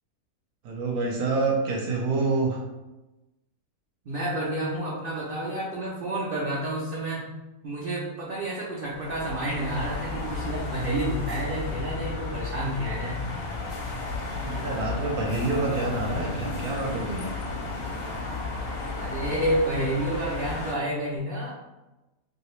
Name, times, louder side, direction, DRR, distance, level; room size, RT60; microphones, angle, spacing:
voice 1, 0.6-2.6 14.2-17.3, right 3 dB, 75° right, -2 dB, 1.1 m, -27 dB
voice 2, 4.1-7.2 7.6-13.2 19.0-21.7, right 1 dB, 60° right, -5 dB, 0.6 m, -30 dB
Pedestrian Crossing Seoul, 8.9-20.7, left 3 dB, 70° left, 1.0 m, -33 dB
2.8 x 2.6 x 3.1 m, 1.0 s
omnidirectional pair, 1.5 m